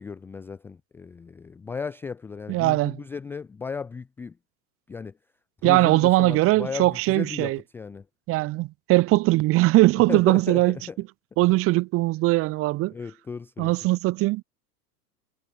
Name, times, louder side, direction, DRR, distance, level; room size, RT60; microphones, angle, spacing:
voice 1, 0.0-4.4 4.9-5.2 5.6-8.1 10.1-11.0 12.9-13.9, left 5 dB, 5° left, 0.4 m, -35 dB
voice 2, 2.5-2.9 5.6-7.6 8.3-10.7 11.4-12.9 13.6-14.4, right 19 dB, 30° right, 0.7 m, -20 dB
figure-of-eight pair, 90°, 48 cm